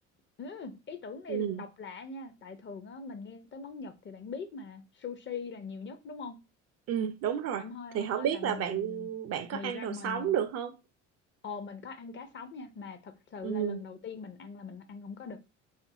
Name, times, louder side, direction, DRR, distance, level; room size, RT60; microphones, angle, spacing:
voice 1, 0.4-6.4 7.6-9.1 9.5-10.4 11.4-15.4, left 5 dB, 30° left, 0.5 m, -42 dB
voice 2, 1.3-1.6 6.9-7.6 7.9-10.7 13.4-13.8, right 9 dB, 45° right, 0.4 m, -31 dB
2.7 x 2.5 x 2.6 m
hypercardioid pair, 65°, 36 cm